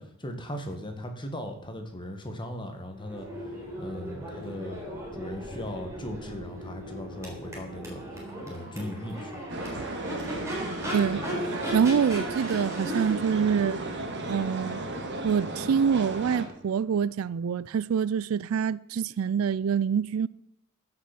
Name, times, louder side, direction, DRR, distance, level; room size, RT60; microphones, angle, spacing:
voice 1, 0.0-3.3 3.8-4.8 5.1-8.0 8.4-9.5, left 1 dB, 20° left, 1.7 m, -38 dB
Crowd / Race car auto racing / Accelerating revving vroom, 2.9-16.8, equal, 15° right, 3.7 m, -38 dB
sound 1, 9.5-16.5, right 2 dB, 55° right, 1.7 m, -35 dB
voice 2, 10.9-13.8 14.3-14.8 15.2-20.3, right 7 dB, 70° right, 0.4 m, -26 dB
15.0 x 6.2 x 6.0 m
head